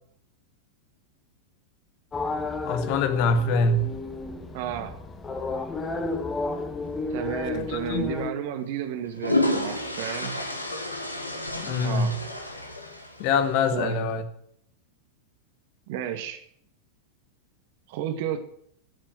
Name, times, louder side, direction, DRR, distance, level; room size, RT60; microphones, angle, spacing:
sound 1, 2.1-8.3, left 3 dB, 20° left, 1.8 m, -32 dB
voice 1, 2.6-3.9 7.7-8.1 11.6-12.1 13.2-14.2, left 3 dB, 45° left, 1.9 m, -24 dB
voice 2, 4.5-4.9 7.1-10.4 11.8-12.1 13.7-14.0 15.9-16.4 17.9-18.4, right 10 dB, 50° right, 1.8 m, -32 dB
sound 2, 7.5-7.7 8.8-13.5, left 1 dB, 85° left, 2.0 m, -30 dB
15.5 x 7.4 x 9.0 m
figure-of-eight pair, 90°, 0 cm